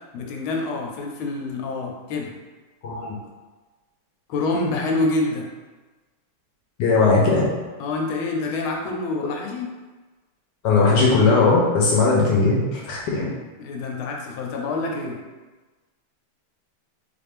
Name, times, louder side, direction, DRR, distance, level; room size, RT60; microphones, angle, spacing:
voice 1, 0.1-2.3 4.3-5.5 7.8-9.7 13.6-15.2, left 2 dB, 85° left, 0 dB, 1.5 m, -26 dB
voice 2, 2.8-3.2 6.8-7.4 10.6-13.3, left 3 dB, 65° left, -3 dB, 1.2 m, -18 dB
4.3 x 2.5 x 3.4 m, 1.3 s
omnidirectional pair, 2.3 m